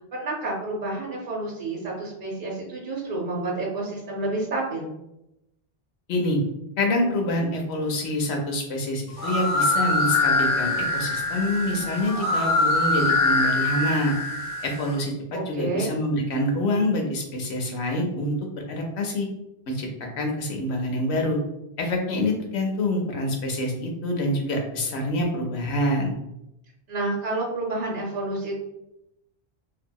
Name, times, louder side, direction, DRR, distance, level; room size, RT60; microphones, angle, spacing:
voice 1, 0.1-4.9 15.3-15.9 26.9-28.6, right 2 dB, 70° right, -3 dB, 0.9 m, -29 dB
voice 2, 6.1-6.4 6.8-14.2 14.6-18.3 18.7-19.3 19.7-19.9 20.2-21.4 21.8-26.2, left 1 dB, 80° left, 2 dB, 0.9 m, -26 dB
sound 1, 9.1-14.9, left 2 dB, 50° left, 0.8 m, -24 dB
2.7 x 2.7 x 2.2 m, 0.86 s
omnidirectional pair, 1.1 m